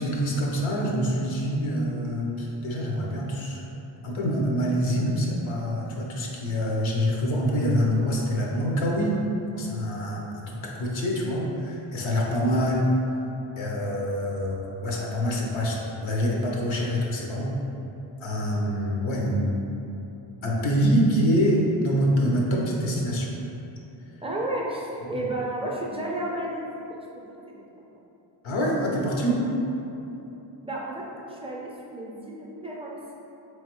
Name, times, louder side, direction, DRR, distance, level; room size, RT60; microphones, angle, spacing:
voice 1, 0.0-3.6 4.0-9.2 9.5-12.9 13.6-17.6 18.2-19.6 20.4-23.3 25.1-25.2 28.4-29.5, equal, 75° left, -2 dB, 0.8 m, -25 dB
voice 2, 24.2-27.4 27.8-28.0 30.6-33.1, right 1 dB, 10° right, -3 dB, 0.5 m, -32 dB
3.5 x 3.1 x 3.0 m, 2.9 s
wide cardioid pair, 95°, 48 cm